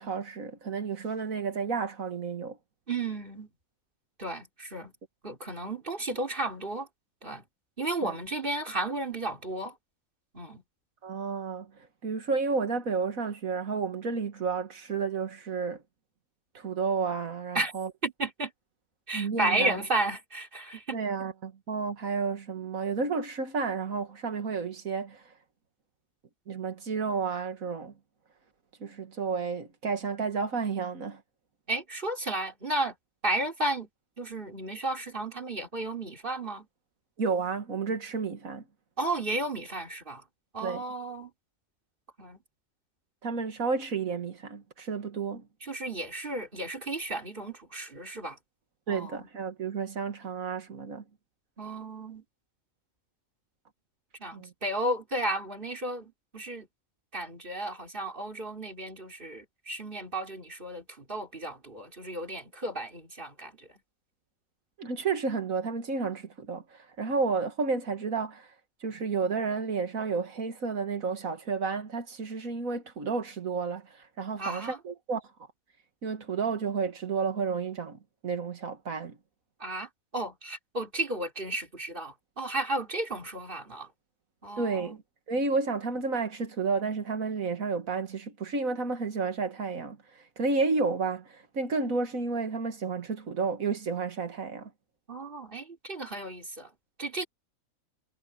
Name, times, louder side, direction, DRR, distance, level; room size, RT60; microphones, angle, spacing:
voice 1, 0.0-2.6 8.0-8.1 11.0-11.7 12.0-15.8 16.5-17.9 19.1-19.8 20.9-25.2 26.5-27.9 28.8-31.2 37.2-38.6 40.6-40.8 43.2-45.5 48.9-51.0 54.3-54.5 64.8-68.5 68.8-75.3 76.0-79.2 84.6-85.0 85.3-90.0 90.4-94.7, right 4 dB, 85° right, 2.3 m, -31 dB
voice 2, 2.9-3.5 4.2-4.9 5.2-6.9 7.2-7.4 7.8-9.8 10.3-10.6 17.5-17.7 18.0-18.5 19.1-21.0 31.7-32.9 33.2-33.9 34.2-36.7 39.0-40.2 40.5-41.3 42.2-42.4 45.6-48.4 48.9-49.3 51.6-52.2 54.2-56.7 57.1-63.7 74.4-74.8 79.6-83.9 84.4-85.0 95.1-96.7 97.0-97.3, right 2 dB, 40° right, 4.2 m, -33 dB
omnidirectional pair, 1.4 m